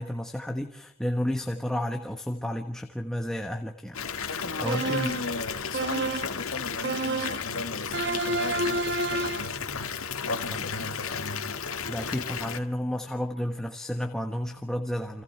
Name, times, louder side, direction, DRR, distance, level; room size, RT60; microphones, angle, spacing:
voice 1, 0.0-4.3 4.6-5.1 11.9-15.2, equal, 5° left, 1.2 m, -31 dB
Water tap faucet / Bathtub (filling or washing) / Fill (with liquid), 3.9-12.6, left 6 dB, 85° left, 1.9 m, -34 dB
voice 2, 4.3-11.6, left 2 dB, 70° left, 1.3 m, -37 dB
sound 1, 4.7-5.3 5.7-6.4 6.8-7.5 7.9-9.6, right 2 dB, 50° right, 1.1 m, -29 dB
29.5 x 26.5 x 4.5 m
head